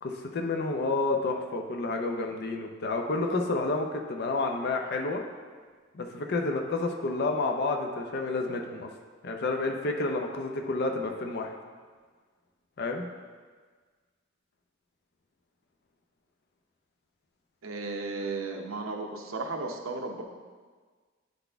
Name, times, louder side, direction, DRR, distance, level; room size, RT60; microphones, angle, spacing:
voice 1, 0.0-5.2 5.9-8.9 9.2-11.5 12.8-13.1, left 3 dB, 55° left, 3 dB, 0.6 m, -30 dB
voice 2, 17.6-20.2, right 3 dB, 80° right, 3 dB, 0.8 m, -34 dB
10.0 x 4.0 x 3.4 m, 1.5 s
head